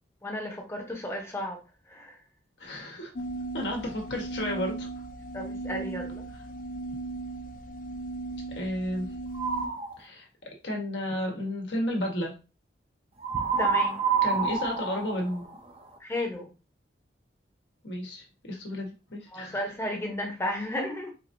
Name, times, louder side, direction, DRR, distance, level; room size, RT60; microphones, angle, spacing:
voice 1, 0.2-1.6 1.9-2.2 5.3-6.2 13.6-14.0 16.0-16.5 19.3-21.1, left 1 dB, 15° left, 0.8 m, -33 dB
voice 2, 2.6-3.1 3.5-4.9 8.6-9.1 10.0-10.3 10.6-12.4 14.2-15.4 17.8-19.6, left 1 dB, 80° left, 1.3 m, -32 dB
sound 1, 3.2-9.7, right 2 dB, 50° left, 0.4 m, -37 dB
sound 2, 9.3-9.9 13.2-16.0, right 5 dB, 30° right, 0.5 m, -28 dB
4.4 x 2.5 x 2.6 m
head